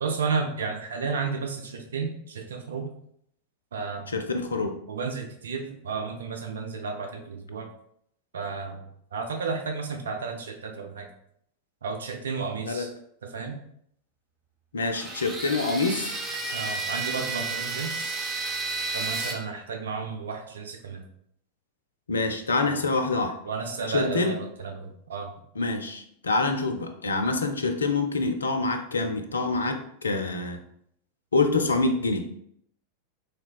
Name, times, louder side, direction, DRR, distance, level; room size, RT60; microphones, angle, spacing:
voice 1, 0.0-2.9 3.7-4.1 4.9-7.7 8.3-8.8 9.1-11.1 11.8-12.9 13.2-13.6 16.5-18.2 18.9-21.0 22.6-22.8 23.5-25.3, right 5 dB, 65° right, 3 dB, 0.5 m, -32 dB
voice 2, 4.1-4.7 12.7-12.9 14.7-16.2 22.1-23.4 23.9-24.4 25.6-30.6 31.3-32.3, left 3 dB, 75° left, 6 dB, 0.4 m, -26 dB
sound 1, 14.9-19.3, right 3 dB, 15° right, 0.6 m, -32 dB
3.2 x 3.1 x 2.3 m, 0.70 s
figure-of-eight pair, 90°, 0 cm